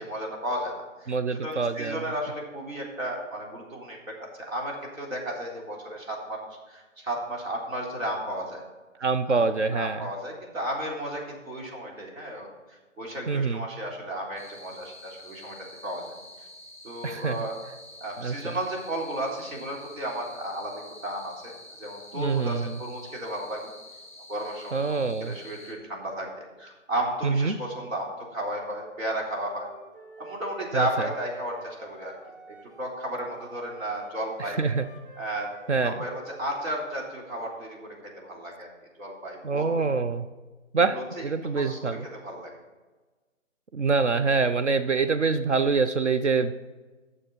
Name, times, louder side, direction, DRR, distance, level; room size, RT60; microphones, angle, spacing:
voice 1, 0.0-1.2 1.4-6.4 6.7-8.6 9.3-9.5 9.7-15.6 15.8-16.2 16.8-17.6 18.0-21.5 21.8-23.6 24.3-26.3 26.6-29.7 30.2-32.2 32.5-34.6 35.2-35.5 35.8-38.0 38.2-38.7 39.0-39.9 40.8-41.2 41.6-42.5, right 1 dB, 85° right, -2 dB, 3.7 m, -34 dB
voice 2, 1.1-2.0 9.0-10.1 13.3-13.6 17.0-17.5 18.2-18.6 22.1-22.8 24.7-25.4 27.2-27.6 30.7-31.1 34.4-34.9 35.7-36.0 39.4-40.3 40.7-42.1 43.7-46.5, right 4 dB, 60° right, 10 dB, 0.6 m, -25 dB
sound 1, 14.4-25.7, left 1 dB, ahead, 0.7 m, -48 dB
Wind instrument woodwind instrument, 29.5-32.9 33.2-36.8, right 3 dB, 40° right, 1.3 m, -49 dB
9.8 x 6.7 x 5.3 m, 1.3 s
hypercardioid pair, 180°, 40 cm